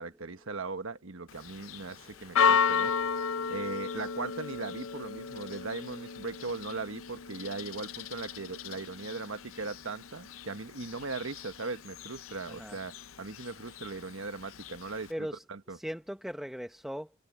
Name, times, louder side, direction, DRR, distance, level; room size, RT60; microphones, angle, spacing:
voice 1, 0.0-3.2 3.5-15.1 15.5-15.8, right 3 dB, 75° right, 1.3 m, -39 dB
Church bell, 1.3-15.1, left 6 dB, 75° left, 0.6 m, -34 dB
voice 2, 1.8-2.4 12.5-12.8 15.1-17.1, equal, ahead, 0.8 m, -40 dB
head